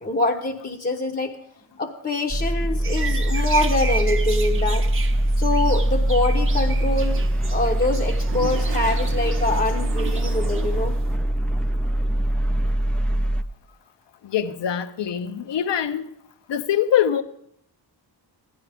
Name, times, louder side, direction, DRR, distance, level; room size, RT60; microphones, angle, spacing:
voice 1, 0.0-1.4 1.8-4.9 5.4-7.2 7.5-11.0, left 2 dB, 25° left, 0.7 m, -25 dB
sound 1, 2.3-13.4, right 1 dB, 5° left, 0.4 m, -22 dB
sound 2, 2.8-11.1, right 4 dB, 30° right, 0.8 m, -35 dB
Toilet flush, 8.0-11.0, right 9 dB, 70° right, 0.6 m, -37 dB
voice 2, 14.2-16.1 16.5-17.2, left 9 dB, 75° left, 0.8 m, -23 dB
16.0 x 11.5 x 3.4 m
wide cardioid pair, 155°, 43 cm